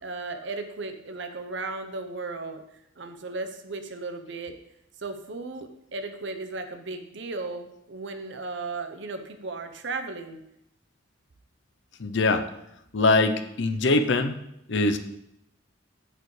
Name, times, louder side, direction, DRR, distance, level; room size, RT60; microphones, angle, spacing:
voice 1, 0.0-2.6 3.0-4.6 5.0-10.4, right 3 dB, 65° right, 7 dB, 0.8 m, -35 dB
voice 2, 12.0-12.4 12.9-14.4 14.7-15.0, left 2 dB, 60° left, 8 dB, 0.6 m, -22 dB
8.8 x 8.4 x 3.3 m, 0.80 s
head